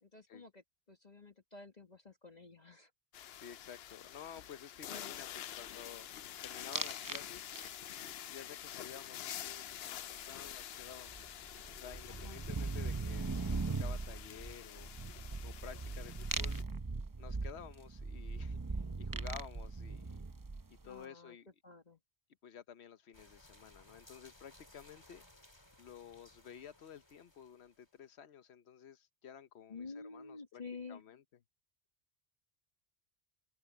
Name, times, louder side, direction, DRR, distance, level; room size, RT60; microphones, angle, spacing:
voice 1, 0.0-2.9 4.3-4.4 4.9-5.2 12.1-12.4 20.8-21.4 21.6-22.0 29.7-31.0, left 4 dB, 40° left, 2.0 m, -50 dB
sound 1, 3.1-16.6, left 10 dB, 75° left, 0.9 m, -48 dB
voice 2, 3.4-6.1 6.4-7.5 8.3-14.9 15.4-16.6 17.2-20.2 20.8-21.5 22.4-25.2 25.8-30.6 30.9-31.2, left 8 dB, 90° left, 1.1 m, -52 dB
sound 2, 6.7-7.2 7.6-8.0 10.5-10.6 10.8-20.9, right 3 dB, 25° right, 0.5 m, -40 dB
sound 3, 23.1-28.0, left 1 dB, 25° left, 3.2 m, -62 dB
open air
omnidirectional pair, 1.1 m